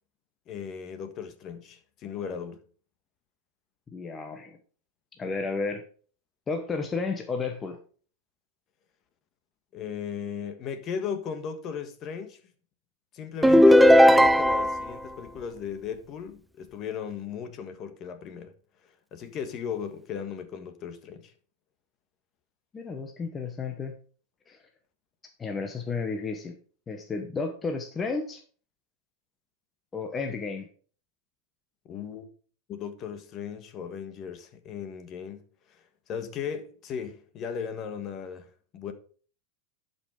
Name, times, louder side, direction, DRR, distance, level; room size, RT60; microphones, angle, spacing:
voice 1, 0.5-2.6 9.7-12.4 13.1-18.5 19.1-21.3 31.8-32.3 32.7-38.9, left 7 dB, 40° left, 1.5 m, -37 dB
voice 2, 3.9-4.6 5.2-5.8 6.5-7.8 22.7-23.9 24.5-24.6 25.4-26.6 26.9-28.4 29.9-30.7, left 4 dB, 20° left, 1.1 m, -32 dB
sound 1, 13.4-14.9, equal, 5° right, 0.4 m, -16 dB
11.0 x 5.5 x 4.8 m
supercardioid pair, 130°, 0 cm